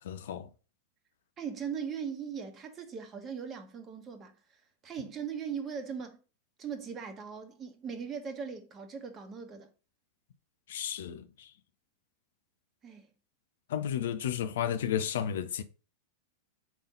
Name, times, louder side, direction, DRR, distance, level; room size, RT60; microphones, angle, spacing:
voice 1, 0.0-0.5 10.7-11.5 13.7-15.6, left 9 dB, 60° left, 0.7 m, -33 dB
voice 2, 1.4-6.2 6.6-9.7 12.8-13.1, right 6 dB, 25° right, 1.1 m, -39 dB
5.1 x 3.6 x 5.4 m
figure-of-eight pair, 90°, 0 cm